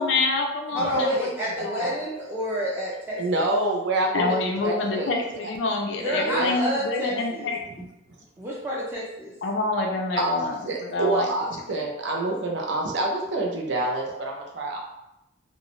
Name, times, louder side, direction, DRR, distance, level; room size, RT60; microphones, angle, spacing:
voice 1, 0.0-1.3 1.6-1.9 4.1-7.9 9.4-11.3, left 3 dB, 75° left, 2 dB, 0.4 m, -27 dB
voice 2, 0.7-3.2 6.0-7.5 8.4-9.3, equal, 10° right, -6 dB, 0.4 m, -28 dB
voice 3, 3.2-5.5 6.1-6.7 7.8-7.9 10.2-14.8, right 2 dB, 65° right, 0 dB, 0.6 m, -27 dB
2.4 x 2.0 x 2.9 m, 0.88 s
head